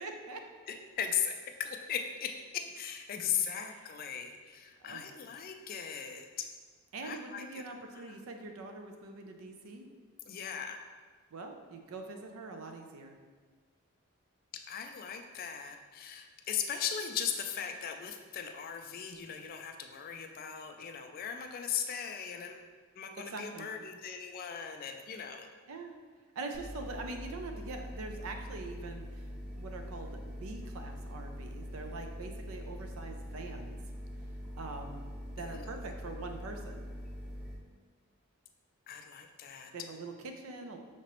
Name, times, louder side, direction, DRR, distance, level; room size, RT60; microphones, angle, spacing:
voice 1, 0.0-0.4 4.8-5.1 6.9-9.9 11.3-13.2 23.2-23.7 25.7-25.9 26.4-33.8 34.6-35.0 35.4-36.9 39.7-40.8, right 3 dB, 85° right, 4 dB, 0.5 m, -43 dB
voice 2, 0.7-6.5 7.0-7.6 7.9-8.2 10.3-10.8 14.5-22.7 23.0-25.5 35.4-35.8 38.9-39.7, left 8 dB, 45° left, 5 dB, 0.3 m, -38 dB
sound 1, 26.5-37.5, equal, 5° right, 0.6 m, -43 dB
5.8 x 2.9 x 3.0 m, 1.5 s
head